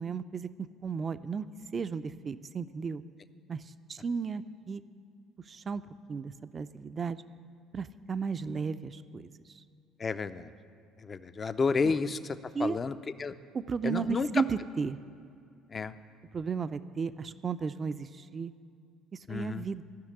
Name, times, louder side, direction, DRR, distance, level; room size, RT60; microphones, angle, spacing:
voice 1, 0.0-1.5 1.7-3.0 3.5-3.6 3.9-4.8 5.5-5.8 6.1-7.2 7.7-9.3 12.5-12.8 13.5-15.0 16.3-18.5 19.1-19.8, right 5 dB, 35° right, 12 dB, 0.5 m, -34 dB
voice 2, 10.0-10.5 11.0-13.4 13.8-14.4 15.7-15.9 19.3-19.7, left 4 dB, 35° left, 13 dB, 0.6 m, -31 dB
13.5 x 6.4 x 9.7 m, 2.5 s
figure-of-eight pair, 55°, 0 cm